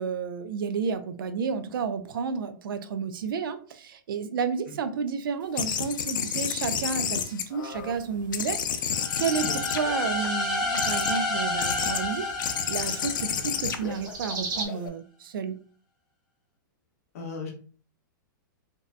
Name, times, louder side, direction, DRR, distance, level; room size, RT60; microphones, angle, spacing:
voice 1, 0.0-15.6, right 6 dB, 85° right, 10 dB, 0.4 m, -31 dB
sound 1, 5.5-8.0 8.3-10.3 10.7-11.2 11.6-12.0 12.4-14.9, left 7 dB, 70° left, 0.4 m, -30 dB
sound 2, 7.7-14.7, right 2 dB, 65° right, 0.8 m, -42 dB
sound 3, 8.9-13.8, left 2 dB, 5° left, 0.4 m, -30 dB
voice 2, 17.1-17.5, left 4 dB, 45° left, 1 dB, 0.7 m, -36 dB
2.7 x 2.2 x 2.4 m, 0.42 s
supercardioid pair, 175°, 11 cm